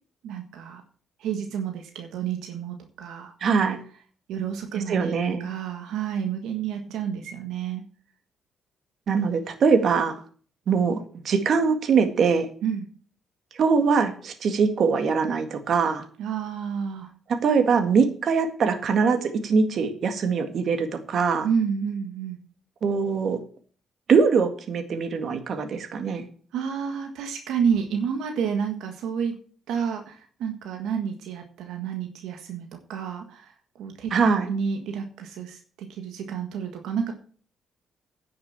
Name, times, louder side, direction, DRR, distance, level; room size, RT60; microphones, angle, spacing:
voice 1, 0.2-0.8 1.2-3.3 4.3-5.1 5.4-7.8 12.6-12.9 16.2-17.1 21.4-22.4 26.5-29.3 29.7-34.1 34.5-37.1, right 7 dB, 85° right, 4 dB, 1.6 m, -30 dB
voice 2, 3.4-3.8 4.7-5.5 9.1-10.1 10.7-11.0 11.2-12.5 13.5-16.0 17.4-21.5 22.8-23.4 24.1-26.2 34.1-34.5, right 5 dB, 60° right, 7 dB, 1.9 m, -22 dB
10.0 x 6.6 x 7.3 m, 0.43 s
cardioid pair, 90°, 0 cm